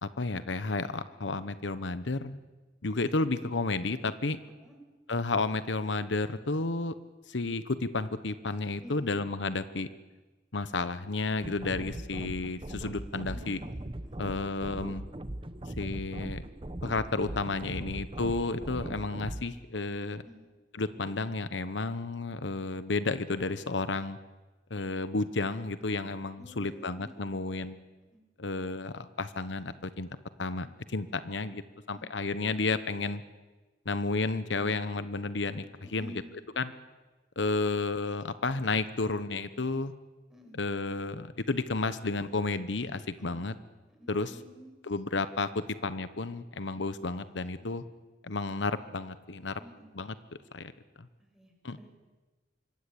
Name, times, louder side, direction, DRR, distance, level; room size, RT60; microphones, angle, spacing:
voice 1, 0.0-2.4 2.8-4.4 5.1-6.9 7.3-9.9 10.5-13.6 14.2-15.0 15.8-16.5 16.8-20.2 20.8-24.2 24.7-27.8 28.4-30.1 30.4-30.7 30.9-31.6 31.9-33.2 33.8-35.6 35.9-36.2 36.6-36.7 37.4-39.9 40.6-43.5 44.1-44.3 44.8-47.8 48.2-49.6 49.9-50.1 50.5-50.7 51.0-51.1 51.6-51.8, left 3 dB, 85° left, 12 dB, 1.1 m, -32 dB
voice 2, 8.8-9.2 13.3-14.2 20.2-20.4 26.4-27.1 27.5-27.7 28.1-28.2 31.9-32.0 35.8-36.3 40.3-40.6 43.2-43.4 43.9-44.7 46.7-46.8 47.6-47.7 49.6-49.9 51.2-51.9, right 1 dB, 5° right, 1 dB, 6.9 m, -51 dB
sound 1, 11.4-19.4, right 1 dB, 30° right, 1.0 m, -40 dB
25.5 x 23.0 x 8.7 m, 1.2 s
head